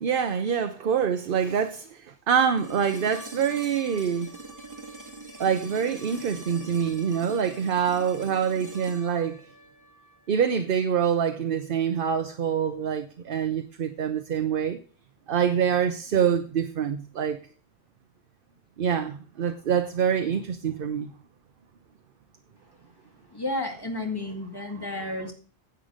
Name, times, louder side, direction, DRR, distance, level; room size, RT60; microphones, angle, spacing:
voice 1, 0.0-4.3 5.4-9.4 10.3-14.8 15.3-17.4 18.8-21.1, right 7 dB, 60° right, 0.9 m, -25 dB
sound 1, 2.6-10.6 12.8-12.9, right 2 dB, 15° right, 1.9 m, -43 dB
voice 2, 23.3-25.3, left 2 dB, 20° left, 2.1 m, -32 dB
10.5 x 8.0 x 5.0 m
omnidirectional pair, 1.1 m